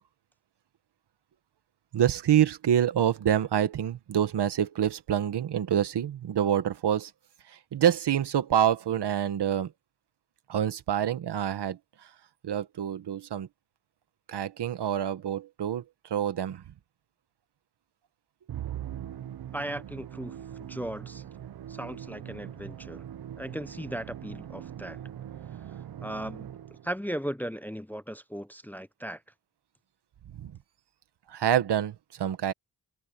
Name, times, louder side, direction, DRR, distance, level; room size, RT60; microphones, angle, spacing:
voice 1, 1.9-7.1 7.5-9.7 10.5-12.1 12.4-13.5 14.3-16.6 30.3-30.6 31.3-32.5, right 10 dB, 80° right, 1.3 m, -27 dB
Musical instrument, 18.5-27.0, right 11 dB, 65° right, 0.8 m, -41 dB
voice 2, 19.5-20.3 20.7-21.2 21.7-23.1 23.4-25.0 26.0-26.6 26.8-29.2, equal, 5° left, 0.7 m, -37 dB
cardioid pair, 90°, 40 cm